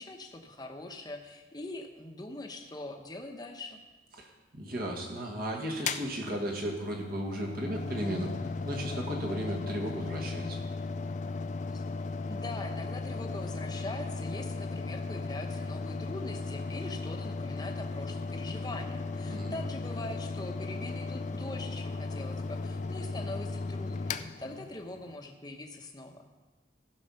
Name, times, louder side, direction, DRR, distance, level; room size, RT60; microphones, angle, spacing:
voice 1, 0.0-3.8 11.7-11.8 12.3-26.3, left 2 dB, 20° left, 4 dB, 1.0 m, -42 dB
voice 2, 4.2-10.6 19.2-19.6, right 1 dB, 50° right, -1 dB, 1.9 m, -35 dB
Mechanical fan, 5.7-25.1, left 3 dB, 40° left, 0.4 m, -36 dB
15.0 x 6.4 x 5.7 m, 1.2 s
head